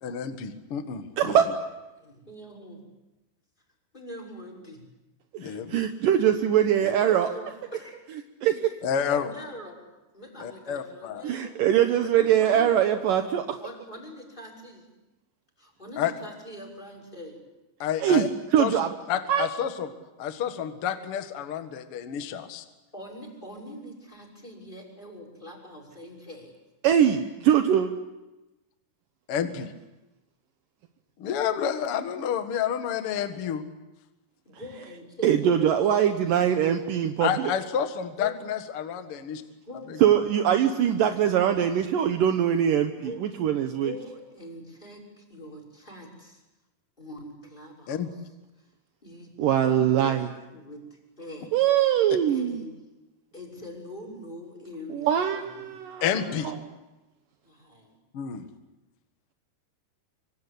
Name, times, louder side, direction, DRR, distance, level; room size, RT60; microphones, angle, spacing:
voice 1, 0.0-1.4 5.4-5.8 6.8-6.9 8.8-9.3 10.4-11.2 16.0-16.1 17.8-18.3 18.6-18.7 19.1-19.9 20.2-22.6 29.3-29.7 31.2-33.6 37.2-39.4 39.9-40.2 47.9-48.1 52.1-52.2 56.0-56.5 58.1-58.4, left 8 dB, 65° left, 8 dB, 1.3 m, -29 dB
voice 2, 1.2-1.5 5.4-7.3 8.4-8.7 11.2-13.6 18.0-18.9 19.3-19.5 26.8-27.9 35.2-37.5 40.0-43.9 49.4-50.3 51.5-52.6 54.9-56.0, right 9 dB, 75° right, 6 dB, 2.0 m, -22 dB
voice 3, 1.9-2.8 3.9-4.8 7.0-8.0 9.2-9.8 10.1-11.6 12.0-12.8 13.6-14.8 15.6-17.4 22.9-26.5 34.5-36.3 38.2-38.4 39.6-40.0 43.0-43.2 43.6-46.4 47.0-48.2 48.6-48.7 49.0-51.5 52.3-52.7 53.3-55.8 57.4-58.0, left 1 dB, 10° left, 1 dB, 5.7 m, -43 dB
25.5 x 25.5 x 8.2 m, 1.0 s
omnidirectional pair, 5.3 m